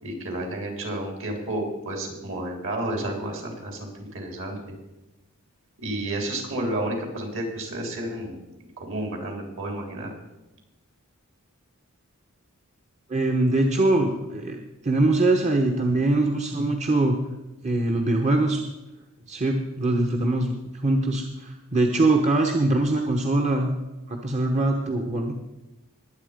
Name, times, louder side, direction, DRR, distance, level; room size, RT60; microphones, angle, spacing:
voice 1, 0.0-4.6 5.8-8.4 8.8-10.1, right 1 dB, 60° right, 2 dB, 3.7 m, -31 dB
voice 2, 13.1-17.2 17.6-18.6 19.3-20.5 20.8-23.7 24.1-25.3, right 2 dB, 30° right, 3 dB, 1.1 m, -22 dB
21.0 x 8.2 x 5.1 m, 1.0 s
head